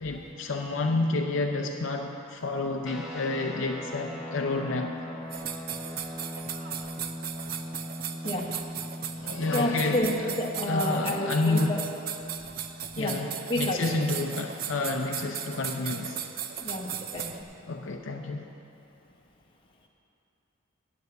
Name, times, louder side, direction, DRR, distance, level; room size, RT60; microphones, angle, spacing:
voice 1, 0.0-5.0 9.2-10.3 10.7-11.8 13.0-13.3 13.5-16.2 17.7-18.4, left 3 dB, 65° left, 3 dB, 0.6 m, -29 dB
sound 1, 2.8-14.6, left 1 dB, 5° right, 1.2 m, -41 dB
sound 2, 5.3-17.4, right 9 dB, 45° right, 0.5 m, -37 dB
voice 2, 9.2-11.8 12.9-13.1 13.5-13.8 16.6-17.3, left 1 dB, 25° left, -1 dB, 1.2 m, -30 dB
9.5 x 8.0 x 7.8 m, 2.8 s
head